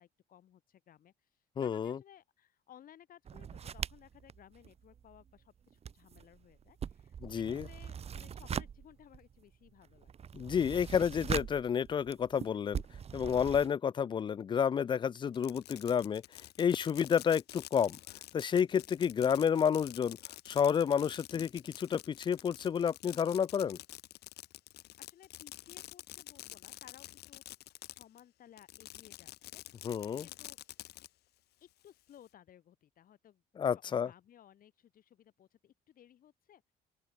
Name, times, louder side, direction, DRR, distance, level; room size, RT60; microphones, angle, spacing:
voice 1, 0.0-10.1 25.0-27.4 27.9-29.6 30.2-30.6 31.6-36.7, left 10 dB, 55° left, 6.4 m, -59 dB
voice 2, 1.6-2.0 7.2-7.6 10.3-12.8 13.1-16.2 16.6-18.0 18.3-20.2 20.5-23.8 29.8-30.3 33.6-34.1, left 7 dB, 30° left, 0.4 m, -30 dB
sound 1, 3.3-5.4 5.7-13.7, right 7 dB, 35° right, 1.1 m, -42 dB
Fireworks, 15.3-28.2 28.6-31.1, left 16 dB, 75° left, 2.2 m, -49 dB
open air
cardioid pair, 110°, 17 cm